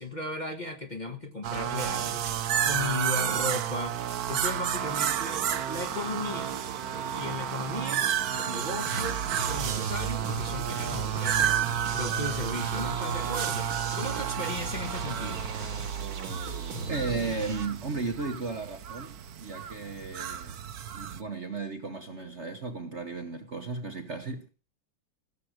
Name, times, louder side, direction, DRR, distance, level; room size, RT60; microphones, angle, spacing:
voice 1, 0.0-2.3 2.6-4.0 4.3-6.5 7.1-15.5, left 2 dB, 25° left, 1.4 m, -36 dB
sound 1, 1.4-21.2, right 9 dB, 60° right, 1.1 m, -31 dB
sound 2, 4.4-13.7, left 1 dB, 70° left, 5.1 m, -51 dB
sound 3, 8.9-17.7, right 4 dB, 80° right, 2.8 m, -36 dB
voice 2, 16.9-20.6 20.9-24.5, right 4 dB, 40° right, 1.3 m, -35 dB
16.5 x 7.7 x 6.4 m
omnidirectional pair, 2.2 m